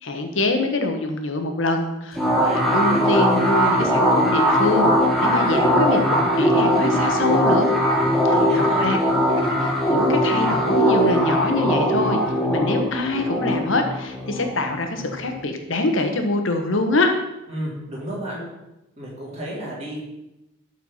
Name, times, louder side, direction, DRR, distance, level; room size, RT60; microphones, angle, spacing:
voice 1, 0.0-4.9 5.2-7.7 8.2-9.0 9.4-17.1, left 2 dB, 70° left, 5 dB, 1.2 m, -24 dB
sound 1, 2.2-15.4, equal, ahead, 1.4 m, -20 dB
voice 2, 8.4-8.9 17.5-18.4 19.0-20.0, equal, 30° right, -6 dB, 3.7 m, -31 dB
12.0 x 4.6 x 5.6 m, 0.93 s
head